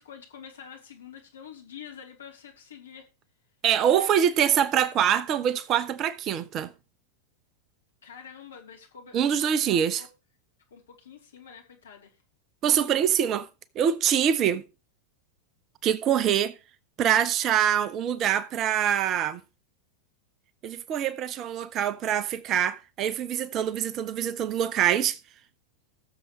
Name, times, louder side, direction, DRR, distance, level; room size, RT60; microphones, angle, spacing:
voice 1, 0.0-3.1 3.9-4.1 8.0-10.1 10.7-12.2, left 7 dB, 65° left, 3.1 m, -47 dB
voice 2, 3.6-6.7 9.1-10.0 12.6-13.5 13.7-14.6 15.8-16.5 17.0-19.4 20.6-25.2, right 9 dB, 35° right, 0.8 m, -24 dB
20.0 x 7.1 x 3.1 m
figure-of-eight pair, 90°, 0 cm